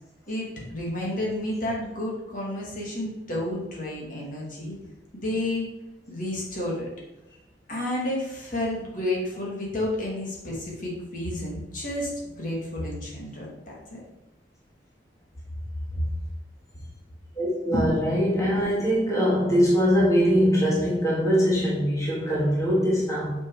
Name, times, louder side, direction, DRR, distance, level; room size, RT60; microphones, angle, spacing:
voice 1, 0.3-4.8 5.1-5.7 6.1-6.9 7.7-14.0 15.9-16.1, left 1 dB, 45° left, -3 dB, 2.5 m, -31 dB
voice 2, 17.4-23.3, equal, 20° left, -6 dB, 2.2 m, -22 dB
7.0 x 6.5 x 4.9 m, 0.97 s
head